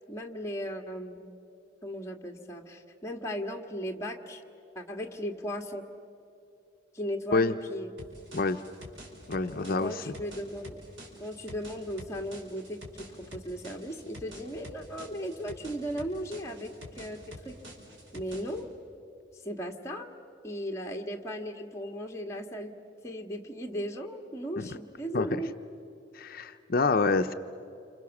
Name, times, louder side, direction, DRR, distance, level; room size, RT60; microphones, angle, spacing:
voice 1, 0.1-1.3 1.8-4.4 4.8-5.9 6.9-7.9 9.8-10.8 11.2-17.6 18.1-18.7 19.4-20.1 20.4-22.7 23.0-25.5, equal, 15° left, 1 dB, 1.7 m, -36 dB
sound 1, 8.0-18.6, equal, 80° right, 4.8 m, -48 dB
voice 2, 9.3-10.1 24.6-24.7 25.1-25.3 26.1-27.3, left 3 dB, 50° left, 8 dB, 0.6 m, -27 dB
29.0 x 26.5 x 7.2 m, 2.8 s
head